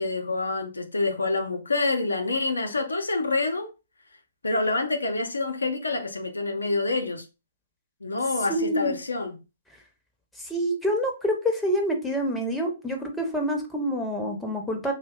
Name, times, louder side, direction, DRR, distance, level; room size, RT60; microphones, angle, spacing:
voice 1, 0.0-3.7 4.4-7.2 8.0-9.4, left 3 dB, 75° left, 0.5 m, -27 dB
voice 2, 8.5-8.9 10.4-14.9, equal, 5° left, 0.6 m, -27 dB
2.6 x 2.1 x 2.2 m
figure-of-eight pair, 125°, 0 cm